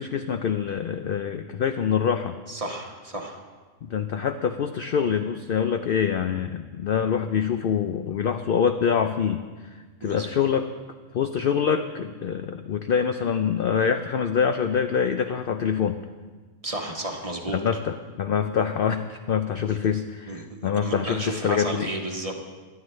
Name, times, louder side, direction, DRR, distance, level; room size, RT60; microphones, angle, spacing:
voice 1, 0.0-2.4 3.8-9.4 9.7-10.7 11.1-16.0 17.5-21.9, left 7 dB, 65° left, 8 dB, 0.5 m, -25 dB
voice 2, 2.5-3.4 10.0-10.4 16.6-17.6 19.6-19.7 20.3-22.3, right 1 dB, 25° right, 1 dB, 1.3 m, -33 dB
24.0 x 9.5 x 3.2 m, 1.4 s
omnidirectional pair, 1.5 m